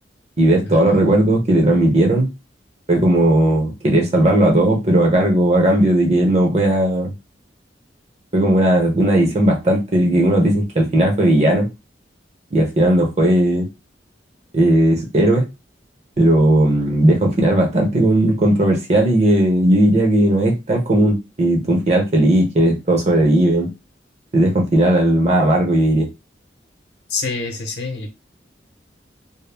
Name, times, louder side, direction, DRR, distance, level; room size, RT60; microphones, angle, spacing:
voice 1, 0.4-2.3 2.9-7.1 8.3-11.7 12.5-13.7 14.5-15.5 16.2-23.7 24.3-26.1, right 1 dB, 40° right, 1 dB, 0.8 m, -16 dB
voice 2, 27.1-28.2, left 4 dB, 65° left, 3 dB, 0.8 m, -26 dB
2.2 x 2.0 x 3.3 m, 0.25 s
head